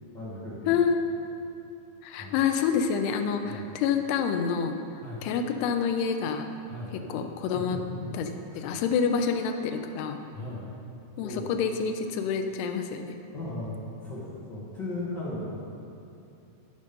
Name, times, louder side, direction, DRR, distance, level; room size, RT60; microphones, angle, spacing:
voice 1, 0.1-0.7 2.2-2.4 3.4-3.7 5.0-5.2 6.7-6.9 7.4-8.1 8.5-8.8 10.3-10.7 11.2-11.5 13.3-15.6, left 2 dB, 65° left, -9 dB, 1.1 m, -37 dB
voice 2, 0.7-1.1 2.0-4.8 5.2-6.5 7.1-7.8 8.1-8.3 8.6-10.2 11.2-13.2, left 6 dB, 90° left, 5 dB, 2.8 m, -27 dB
14.5 x 5.4 x 5.3 m, 2.7 s
omnidirectional pair, 4.6 m